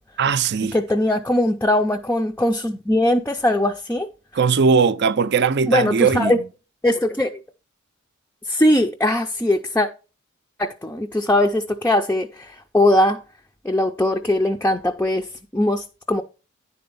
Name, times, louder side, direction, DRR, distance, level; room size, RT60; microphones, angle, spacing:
voice 1, 0.2-0.8 4.3-6.4, right 5 dB, 55° right, 0.5 m, -19 dB
voice 2, 0.7-4.1 5.7-6.4 6.8-7.4 8.5-9.9 10.6-13.2 13.6-16.2, left 1 dB, 10° left, 0.4 m, -20 dB
10.0 x 4.3 x 5.4 m
head